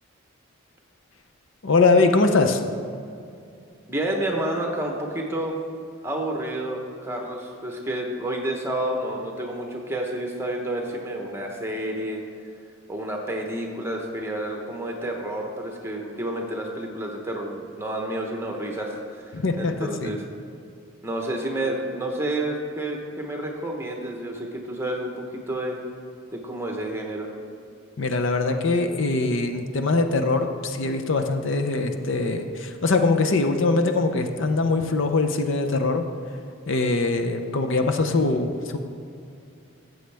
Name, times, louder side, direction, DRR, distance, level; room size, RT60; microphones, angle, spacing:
voice 1, 1.6-2.6 19.3-20.1 28.0-36.0 36.7-38.8, left 3 dB, 65° left, 6 dB, 0.6 m, -22 dB
voice 2, 3.9-5.6 6.0-12.2 12.9-19.2 19.6-20.2 21.0-25.8 26.3-27.3, right 1 dB, 10° right, 1 dB, 1.0 m, -30 dB
13.0 x 7.8 x 3.4 m, 2.5 s
head